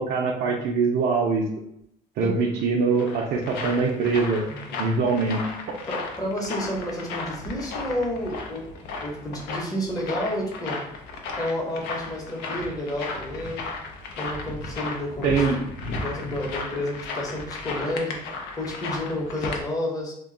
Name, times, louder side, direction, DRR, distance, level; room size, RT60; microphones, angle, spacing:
voice 1, 0.0-1.5 2.2-4.4 4.8-5.5 15.2-15.6, right 4 dB, 65° right, -1 dB, 0.5 m, -23 dB
sound 1, 2.6-19.6, left 3 dB, 85° left, 0.6 m, -35 dB
voice 2, 4.5-4.8 5.9-8.6 9.0-10.8 11.4-13.7 14.2-15.5 16.0-20.1, left 1 dB, 20° left, -1 dB, 0.8 m, -30 dB
2.4 x 2.2 x 3.7 m, 0.73 s
cardioid pair, 110°, 17 cm